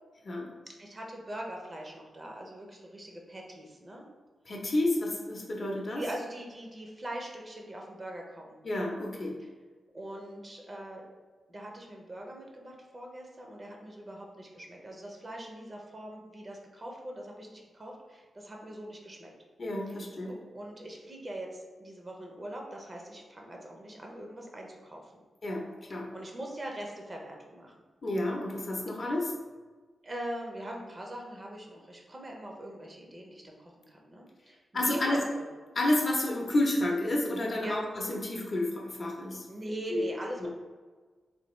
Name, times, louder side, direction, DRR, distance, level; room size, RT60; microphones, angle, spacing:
voice 1, 0.7-4.1 5.9-8.6 9.4-9.5 9.9-11.0 11.5-19.3 19.9-20.0 20.3-25.1 25.9-27.7 30.0-35.4 37.6-37.8 39.5-40.5, right 1 dB, 35° right, 0 dB, 0.6 m, -41 dB
voice 2, 4.5-6.0 8.6-9.3 19.6-20.3 25.4-25.6 25.9-26.1 28.0-29.3 34.7-35.2 35.8-37.8 38.1-39.4 39.9-40.0 40.4-40.5, left 1 dB, 45° left, -1 dB, 0.6 m, -30 dB
3.2 x 2.2 x 3.0 m, 1.4 s
cardioid pair, 85°, 0 cm